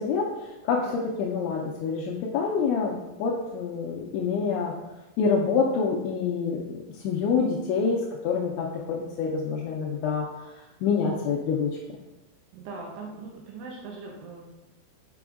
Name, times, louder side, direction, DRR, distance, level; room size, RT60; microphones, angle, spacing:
voice 1, 0.0-4.7 5.2-12.0, left 5 dB, 90° left, -1 dB, 2.6 m, -27 dB
voice 2, 12.5-14.5, right 4 dB, 85° right, -1 dB, 2.8 m, -40 dB
6.8 x 6.2 x 2.4 m, 1.0 s
omnidirectional pair, 5.9 m